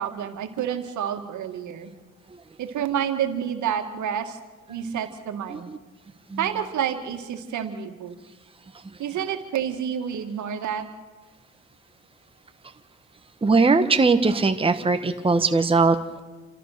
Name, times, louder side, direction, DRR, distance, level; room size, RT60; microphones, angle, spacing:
voice 1, 0.0-1.9 2.6-4.4 4.7-5.7 6.4-8.2 9.0-10.9, right 9 dB, 75° right, 6 dB, 2.0 m, -29 dB
voice 2, 13.4-16.2, right 3 dB, 20° right, 8 dB, 1.2 m, -21 dB
27.5 x 14.5 x 6.7 m, 1.3 s
cardioid pair, 90°, 30 cm